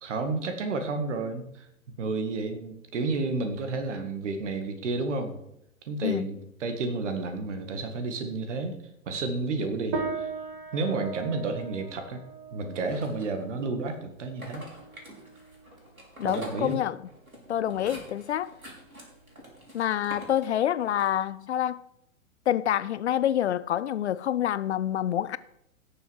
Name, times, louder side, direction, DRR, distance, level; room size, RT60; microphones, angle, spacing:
voice 1, 0.0-1.7 2.0-5.4 5.9-6.4 6.6-8.8 9.1-10.3 10.7-12.2 12.5-14.7 16.2-16.8, right 3 dB, 55° right, 2.0 m, -31 dB
sound 1, 9.9-19.6, right 5 dB, 35° right, 2.5 m, -40 dB
sound 2, 12.7-13.6 14.2-21.3, equal, 90° right, 4.1 m, -47 dB
voice 2, 16.2-17.0 17.5-18.5 19.7-21.8 22.5-25.4, left 11 dB, 55° left, 0.5 m, -27 dB
17.0 x 6.9 x 4.7 m
figure-of-eight pair, 110°, 42 cm